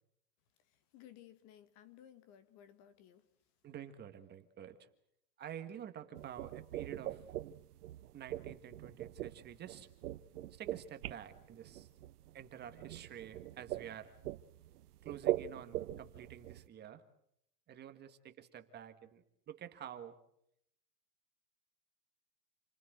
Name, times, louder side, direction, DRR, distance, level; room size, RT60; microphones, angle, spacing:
voice 1, 0.7-3.3, left 11 dB, 35° left, 1.9 m, -58 dB
voice 2, 3.6-4.9 5.4-7.2 8.1-9.9 10.5-11.9 12.3-14.1 15.0-17.0 17.7-20.1, right 9 dB, 20° right, 1.6 m, -49 dB
sound 1, 6.1-16.7, right 13 dB, 70° right, 1.0 m, -42 dB
28.5 x 20.0 x 7.9 m
hypercardioid pair, 140°, 48 cm